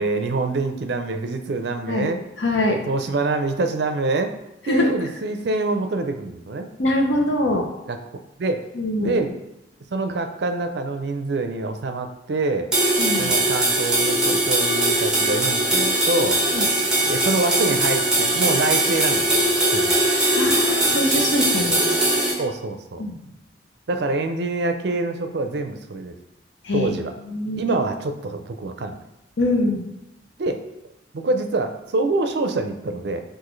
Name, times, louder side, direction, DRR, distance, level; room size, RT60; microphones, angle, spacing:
voice 1, 0.0-2.2 2.7-4.3 4.7-6.7 7.9-8.0 8.4-8.7 9.0-9.3 9.9-12.7 13.2-16.4 17.1-20.0 22.4-23.0 23.9-26.2 26.7-27.1 27.6-29.0 30.4-30.6 31.1-33.2, right 2 dB, 65° right, 7 dB, 0.4 m, -25 dB
voice 2, 2.4-2.8 4.7-4.9 6.8-7.7 8.7-9.2 13.0-13.3 16.5-16.7 20.3-22.0 23.0-23.2 26.6-26.9 27.3-27.8 29.4-29.9, left 1 dB, 85° left, 1 dB, 0.8 m, -23 dB
sound 1, 12.7-22.3, right 1 dB, 5° right, 1.1 m, -20 dB
6.1 x 2.5 x 3.1 m, 0.93 s
head